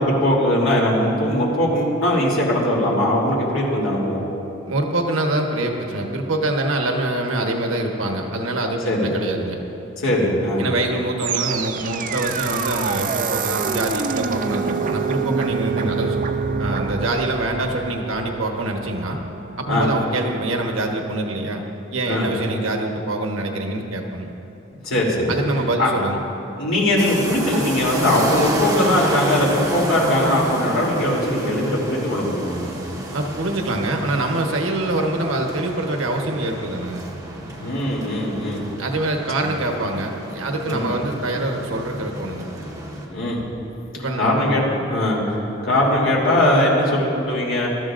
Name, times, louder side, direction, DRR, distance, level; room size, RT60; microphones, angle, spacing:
voice 1, 0.0-4.2 8.8-9.1 10.0-10.7 19.7-19.9 22.0-22.3 24.8-25.4 25.8-25.9 26.6-32.7 37.6-38.6 39.4-39.5 40.6-40.9 43.1-43.4 44.2-47.7, left 1 dB, 75° left, -3 dB, 3.1 m, -20 dB
voice 2, 4.6-9.6 10.6-16.2 16.6-19.2 19.6-21.6 21.9-24.3 25.3-26.2 33.1-37.1 38.8-42.5 43.9-44.3, right 2 dB, 85° right, 2 dB, 1.2 m, -25 dB
sound 1, 11.2-20.3, right 5 dB, 40° right, 0.5 m, -26 dB
sound 2, 27.0-43.1, right 1 dB, 20° right, 1.5 m, -31 dB
22.5 x 13.0 x 2.6 m, 2.9 s
head